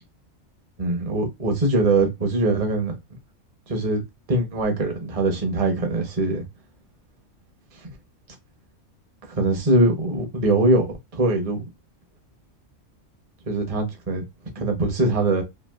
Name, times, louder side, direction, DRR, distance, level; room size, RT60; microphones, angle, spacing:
voice 1, 0.8-3.0 3.7-4.0 4.3-6.4 9.3-10.9 11.1-11.6 13.5-14.2 14.6-15.4, right 2 dB, 35° right, 0.7 m, -22 dB
3.1 x 2.4 x 2.2 m
omnidirectional pair, 1.3 m